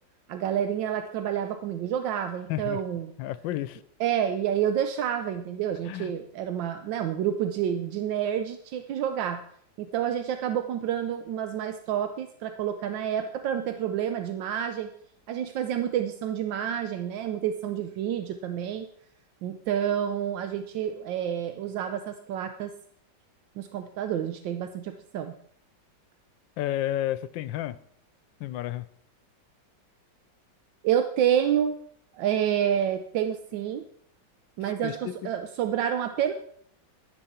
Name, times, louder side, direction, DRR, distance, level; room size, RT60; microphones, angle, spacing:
voice 1, 0.3-3.1 4.0-9.4 9.8-14.9 15.3-18.9 19.4-22.7 23.6-25.3 30.8-31.8 32.1-33.8 34.6-36.3, right 9 dB, 85° right, 8 dB, 1.4 m, -28 dB
voice 2, 2.5-2.8 3.2-3.8 5.8-6.1 26.6-27.8 28.4-28.9 34.6-35.3, left 13 dB, 85° left, 16 dB, 1.3 m, -31 dB
12.0 x 10.0 x 4.3 m, 0.66 s
omnidirectional pair, 2.0 m